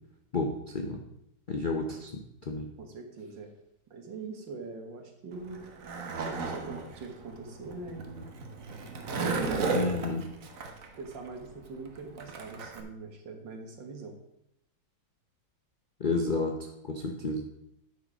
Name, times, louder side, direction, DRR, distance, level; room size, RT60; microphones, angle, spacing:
voice 1, 0.3-1.0 1.5-2.7 9.7-10.2 16.0-17.5, left 3 dB, 50° left, 3 dB, 0.5 m, -31 dB
voice 2, 2.8-3.5 3.9-5.7 6.2-8.3 9.1-9.9 11.0-14.1, right 4 dB, 70° right, 4 dB, 2.1 m, -42 dB
Skateboard, 5.3-12.8, right 4 dB, 50° right, 1.3 m, -35 dB
9.4 x 6.4 x 5.0 m, 0.81 s
omnidirectional pair, 2.0 m